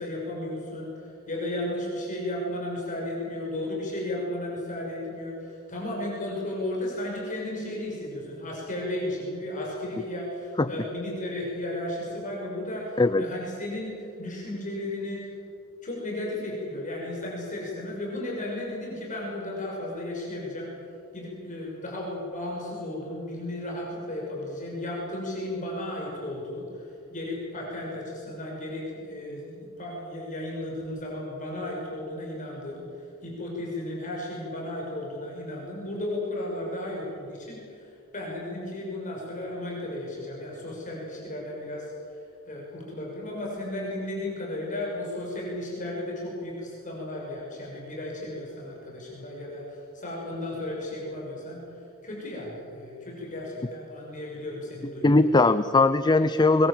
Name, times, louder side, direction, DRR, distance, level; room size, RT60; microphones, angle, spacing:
voice 1, 0.0-15.2 15.8-20.7 21.1-42.2 42.5-51.6 52.0-55.4, left 1 dB, 35° left, -3 dB, 6.2 m, -34 dB
voice 2, 55.0-56.7, left 3 dB, 20° left, 13 dB, 0.5 m, -20 dB
23.5 x 23.5 x 7.6 m, 2.5 s
head